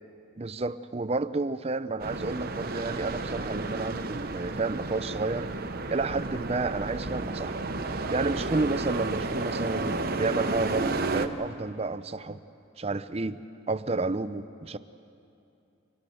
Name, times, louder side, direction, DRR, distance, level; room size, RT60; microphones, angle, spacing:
voice 1, 0.4-5.5 5.9-7.6 7.8-12.4 12.8-13.4 13.7-14.8, right 3 dB, 30° right, 0.6 m, -31 dB
sound 1, 2.0-11.3, right 2 dB, 45° right, 0.9 m, -32 dB
25.0 x 21.0 x 7.7 m
head